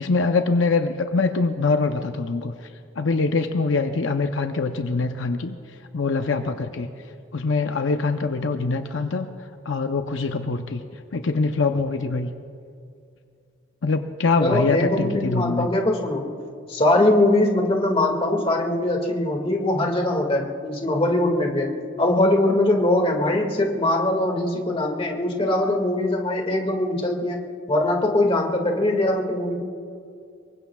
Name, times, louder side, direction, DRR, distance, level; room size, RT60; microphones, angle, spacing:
voice 1, 0.0-2.5 3.0-5.6 5.9-6.9 7.3-9.3 9.6-10.8 11.1-12.3 13.8-15.7, left 3 dB, 75° left, 6 dB, 0.7 m, -23 dB
voice 2, 14.4-16.3 16.7-21.7 22.0-27.4 27.7-29.6, left 1 dB, 30° left, 1 dB, 2.0 m, -21 dB
25.5 x 23.0 x 2.3 m, 2.4 s
head